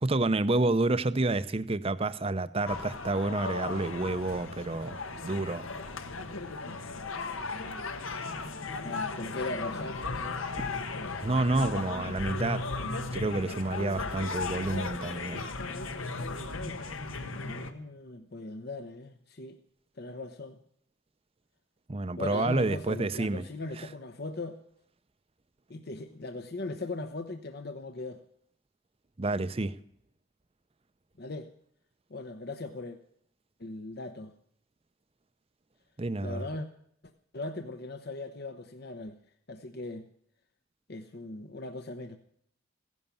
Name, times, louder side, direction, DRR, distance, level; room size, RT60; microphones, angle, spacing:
voice 1, 0.0-5.7 11.2-12.6 13.1-15.4 21.9-23.5 23.8-23.9 29.2-29.7 36.0-36.4, right 2 dB, 30° right, 0.6 m, -29 dB
sound 1, 2.7-17.7, left 3 dB, 85° left, 1.5 m, -36 dB
voice 2, 8.8-10.5 17.2-19.6 20.0-20.6 22.2-24.6 25.7-28.2 31.2-31.5 32.1-33.0 33.6-34.3 36.2-36.7 37.3-39.2 39.5-40.1 40.9-42.2, left 2 dB, 50° left, 0.9 m, -39 dB
16.0 x 11.0 x 7.1 m
head